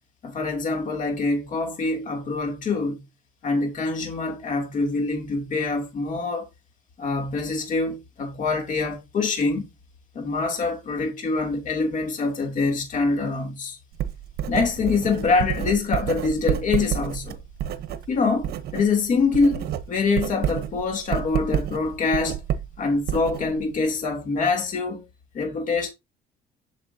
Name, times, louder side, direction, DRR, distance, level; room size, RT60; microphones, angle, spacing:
voice 1, 0.2-3.0 3.4-6.5 7.0-9.7 10.1-13.8 14.5-17.4 18.1-22.4 22.8-25.0 25.3-25.9, left 4 dB, 50° left, 2.9 m, -25 dB
Writing, 13.9-18.9 19.2-23.8, right 10 dB, 70° right, 0.9 m, -29 dB
8.2 x 6.6 x 2.8 m
cardioid pair, 110°, 17 cm